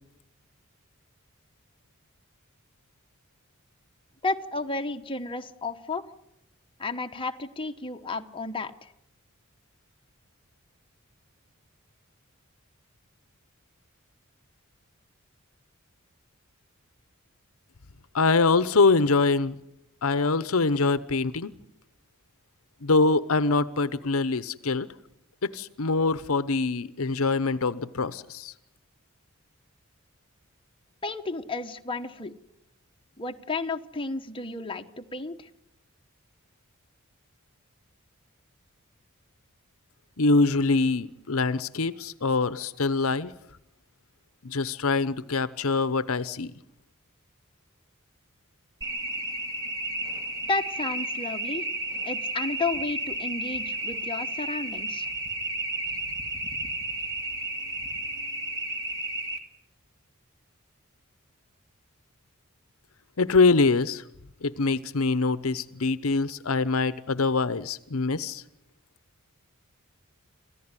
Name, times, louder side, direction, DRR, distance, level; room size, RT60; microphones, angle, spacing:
voice 1, 4.2-6.0 6.8-8.9 31.0-32.3 33.2-35.5 50.5-51.7 52.0-55.1, left 3 dB, 25° left, 5 dB, 1.1 m, -32 dB
voice 2, 18.1-19.6 20.0-21.5 22.8-24.9 25.4-28.5 40.2-43.3 44.4-46.5 63.2-64.0 64.4-68.4, left 3 dB, 75° left, 15 dB, 0.9 m, -24 dB
sound 1, 48.8-59.4, right 1 dB, 20° right, 2.2 m, -32 dB
27.5 x 15.0 x 9.8 m, 0.82 s
head